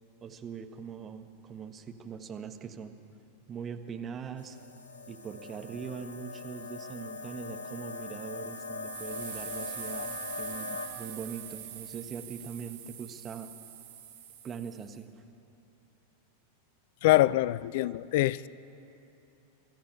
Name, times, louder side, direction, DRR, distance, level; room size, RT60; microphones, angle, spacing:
voice 1, 0.2-3.0 3.5-4.6 5.1-13.5 14.4-15.1, right 6 dB, 25° right, 1.4 m, -41 dB
Luminize Moody fade in and out, 4.4-10.9, left 4 dB, 75° left, 1.9 m, -41 dB
sound 1, 8.8-15.0, right 10 dB, 55° right, 2.3 m, -44 dB
voice 2, 17.0-18.5, left 16 dB, 50° left, 0.5 m, -24 dB
24.0 x 13.5 x 8.8 m
figure-of-eight pair, 90°, 0 cm